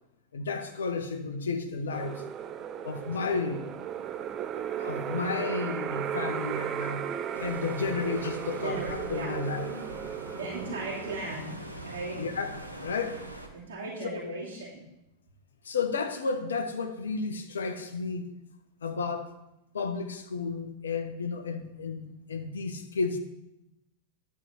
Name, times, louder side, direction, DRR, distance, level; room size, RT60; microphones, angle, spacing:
voice 1, 0.3-2.2 2.8-3.7 4.8-7.1 7.4-9.8 12.2-13.2 14.0-14.3 15.6-18.3 18.8-19.3 19.7-23.2, left 4 dB, 70° left, 0.9 m, -32 dB
sound 1, 1.9-11.2, right 9 dB, 30° right, 0.5 m, -35 dB
sound 2, 7.3-13.5, right 1 dB, 90° right, 0.9 m, -43 dB
voice 2, 8.6-9.4 10.3-11.6 11.8-12.2 13.5-14.8, right 2 dB, 60° right, 2.6 m, -37 dB
10.0 x 4.7 x 5.5 m
figure-of-eight pair, 90°, 0 cm